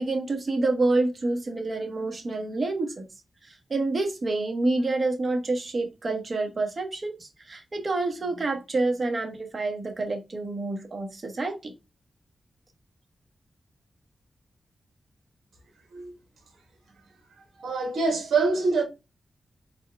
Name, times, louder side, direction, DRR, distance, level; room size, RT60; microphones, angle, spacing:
voice 1, 0.0-3.1 3.7-11.7, right 2 dB, 50° right, 1.2 m, -28 dB
voice 2, 17.6-18.8, right 4 dB, 90° right, 1.1 m, -25 dB
4.3 x 2.3 x 3.4 m
cardioid pair, 50°, 0 cm